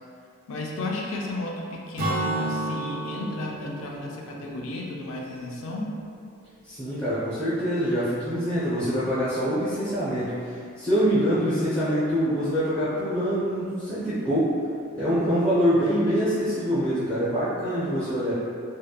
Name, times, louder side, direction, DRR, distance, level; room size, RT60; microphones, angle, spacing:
voice 1, 0.5-5.9, left 2 dB, 70° left, -2 dB, 0.4 m, -33 dB
Acoustic guitar / Strum, 2.0-5.6, right 1 dB, 40° right, 0.3 m, -31 dB
voice 2, 6.7-10.3 10.8-14.5 14.9-18.3, equal, 15° left, -14 dB, 0.5 m, -24 dB
2.7 x 2.1 x 2.3 m, 2.3 s
head